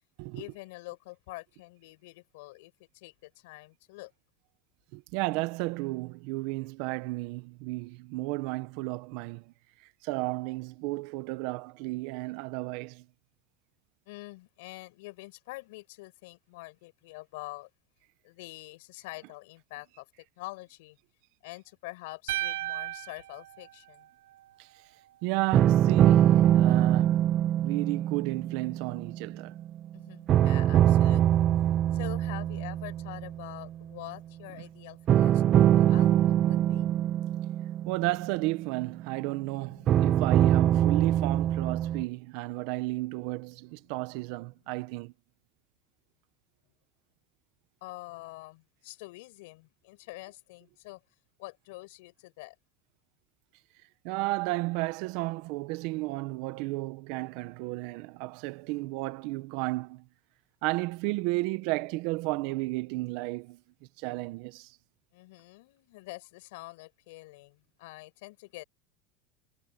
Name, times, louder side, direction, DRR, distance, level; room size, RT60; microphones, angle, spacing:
voice 1, 0.3-4.1 14.1-17.7 18.2-20.1 20.4-21.0 21.4-24.1 26.6-26.9 29.9-31.5 31.9-36.9 39.3-41.0 47.8-51.0 51.4-52.6 65.1-68.6, left 22 dB, 80° left, 5.7 m, -46 dB
voice 2, 4.9-9.5 10.0-13.1 24.6-24.7 25.2-29.6 37.8-45.1 54.0-60.1 60.6-63.6 64.0-64.7, right 22 dB, 65° right, 1.3 m, -33 dB
sound 1, 22.3-24.5, right 16 dB, 90° right, 0.8 m, -36 dB
sound 2, 25.5-29.9 30.3-33.6 35.1-39.1 39.9-42.0, right 11 dB, 40° right, 0.6 m, -23 dB
supercardioid pair, 130°, 0 cm